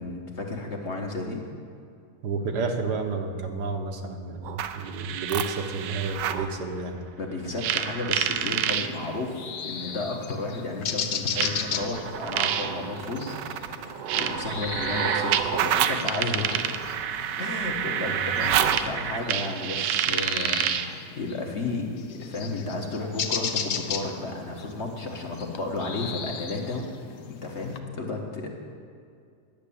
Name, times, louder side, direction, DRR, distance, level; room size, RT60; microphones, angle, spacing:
voice 1, 0.0-1.4 7.2-13.4 14.1-16.8 17.4-28.6, left 2 dB, 45° left, 1 dB, 1.3 m, -33 dB
voice 2, 2.2-7.0 18.1-18.4, right 4 dB, 70° right, 4 dB, 1.5 m, -31 dB
sound 1, 4.4-6.5 7.6-8.9 10.0-10.1 11.4-20.9, right 9 dB, 90° right, 1.3 m, -28 dB
sound 2, 8.3-27.8, left 7 dB, 60° left, 0.7 m, -37 dB
10.5 x 6.6 x 8.4 m, 2.4 s
omnidirectional pair, 1.8 m